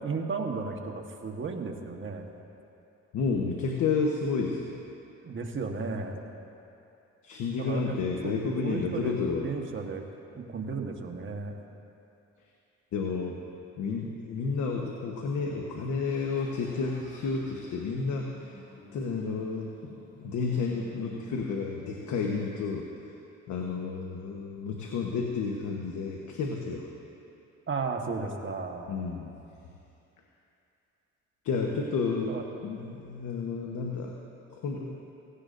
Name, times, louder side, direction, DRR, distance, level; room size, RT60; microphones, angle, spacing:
voice 1, 0.0-2.3 5.2-6.2 7.6-8.0 8.2-8.4 8.6-9.1 9.4-10.0 10.3-11.5 27.7-28.9 32.3-32.4, right 4 dB, 40° right, 2 dB, 1.4 m, -34 dB
voice 2, 3.1-4.8 7.2-9.5 12.9-13.4 13.8-18.3 18.9-19.7 20.2-22.8 23.5-26.9 28.9-29.3 31.4-32.4 32.6-34.2 34.5-34.9, left 4 dB, 75° left, 0 dB, 1.2 m, -31 dB
sound 1, 16.1-22.6, left 2 dB, 40° left, 2.4 m, -52 dB
17.0 x 16.5 x 2.6 m, 2.8 s
cardioid pair, 90°, 30 cm